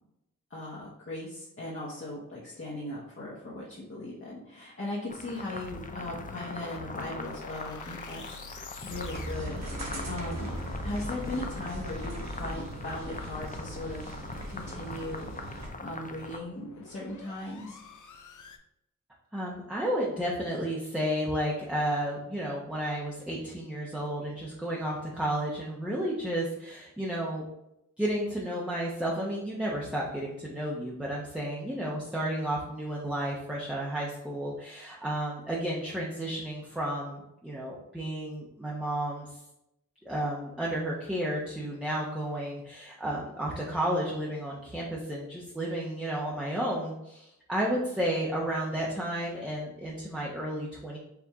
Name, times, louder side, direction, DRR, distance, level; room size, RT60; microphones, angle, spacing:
voice 1, 0.5-10.5 10.8-14.1 14.5-17.8, left 1 dB, 40° left, -7 dB, 1.2 m, -38 dB
sound 1, 5.1-16.4, left 3 dB, 25° left, 0.6 m, -43 dB
sound 2, 5.6-18.6, left 4 dB, 65° left, 0.6 m, -46 dB
sound 3, 8.9-15.7, right 1 dB, 55° right, 1.0 m, -39 dB
voice 2, 19.3-27.4 28.0-39.4 40.0-51.0, right 1 dB, 5° right, -4 dB, 0.9 m, -32 dB
4.8 x 2.6 x 3.6 m, 0.84 s
cardioid pair, 45°, 32 cm